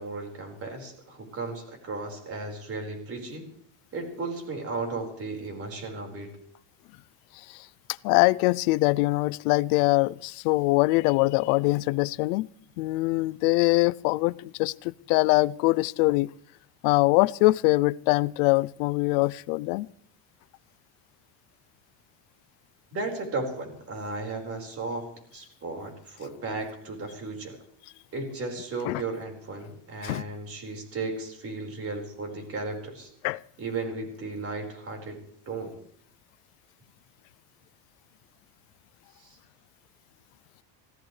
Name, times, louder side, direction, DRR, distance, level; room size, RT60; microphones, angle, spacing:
voice 1, 0.0-3.5 3.9-6.3 22.9-27.6 28.1-33.1 33.6-35.2 35.5-35.8 39.2-39.4, right 3 dB, 30° right, 4.9 m, -35 dB
voice 2, 8.0-12.5 12.8-16.3 16.8-19.9 28.8-29.0 30.0-30.2 33.2-33.4, left 22 dB, 90° left, 0.6 m, -23 dB
25.5 x 16.5 x 3.3 m
cardioid pair, 155°, 43 cm